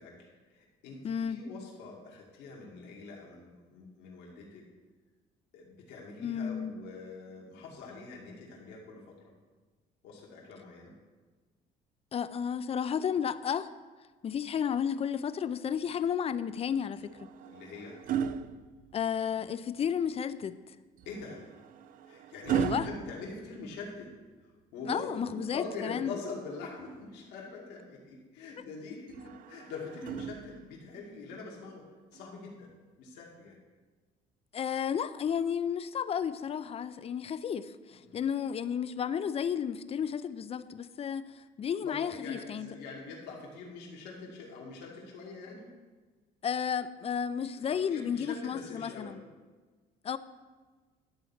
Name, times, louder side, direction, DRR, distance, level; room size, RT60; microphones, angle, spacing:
voice 1, 0.0-4.6 5.5-9.3 10.0-10.9 17.5-18.0 21.1-21.4 22.1-24.1 24.7-31.8 32.1-33.6 37.9-38.2 41.8-45.7 47.6-49.2, left 3 dB, 90° left, -2 dB, 2.2 m, -44 dB
voice 2, 1.0-1.4 6.2-6.7 12.1-13.7 14.2-17.2 18.9-20.6 22.5-22.9 24.9-26.1 34.5-42.8 46.4-49.2 50.0-50.2, left 8 dB, 35° left, 14 dB, 0.5 m, -32 dB
sound 1, 16.9-19.4 21.0-24.2 25.9-27.1 29.1-30.9 32.1-32.3, right 8 dB, 55° right, 0.5 m, -37 dB
11.5 x 4.1 x 7.2 m, 1.4 s
cardioid pair, 110°, 17 cm